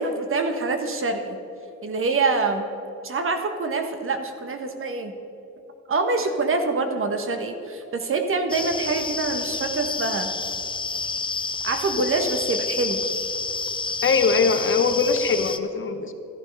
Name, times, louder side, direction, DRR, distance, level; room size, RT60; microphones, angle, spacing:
voice 1, 0.0-1.4 1.8-2.6 3.0-5.1 5.9-10.3 11.6-13.0, right 3 dB, 45° right, 6 dB, 1.4 m, -25 dB
sound 1, 8.5-15.6, left 4 dB, 15° left, 0.6 m, -29 dB
voice 2, 14.0-16.1, left 5 dB, 40° left, 7 dB, 1.1 m, -21 dB
13.5 x 10.5 x 5.4 m, 2.8 s
cardioid pair, 90°, 30 cm